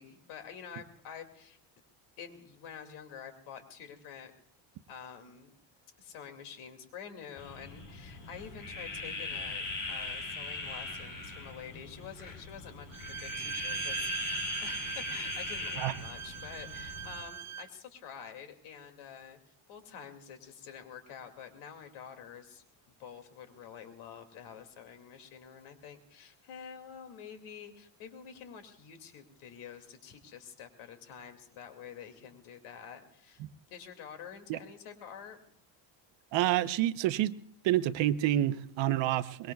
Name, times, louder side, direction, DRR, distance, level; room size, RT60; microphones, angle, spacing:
voice 1, 0.0-1.6 2.2-4.3 4.9-5.5 6.0-19.4 19.7-35.4, left 7 dB, 80° left, 6 dB, 2.5 m, -48 dB
sound 1, 7.4-17.2, left 3 dB, 40° left, 3.2 m, -40 dB
Bowed string instrument, 12.9-17.8, right 10 dB, 35° right, 0.7 m, -40 dB
voice 2, 36.3-37.4 37.6-39.5, right 13 dB, 60° right, 12 dB, 0.9 m, -28 dB
24.0 x 21.5 x 2.3 m, 0.68 s
cardioid pair, 140°, 50 cm